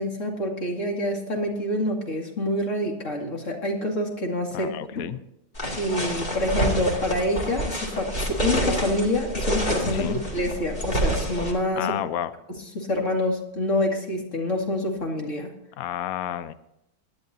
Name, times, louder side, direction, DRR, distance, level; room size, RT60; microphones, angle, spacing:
voice 1, 0.0-5.0 5.8-11.9 12.7-15.5, left 1 dB, 40° left, 1 dB, 2.6 m, -27 dB
voice 2, 4.5-5.2 9.9-10.2 11.8-12.3 15.8-16.5, left 12 dB, 80° left, 13 dB, 0.7 m, -30 dB
sound 1, 5.6-11.5, right 1 dB, 25° left, 2.6 m, -27 dB
20.5 x 11.5 x 2.7 m, 0.85 s
omnidirectional pair, 2.2 m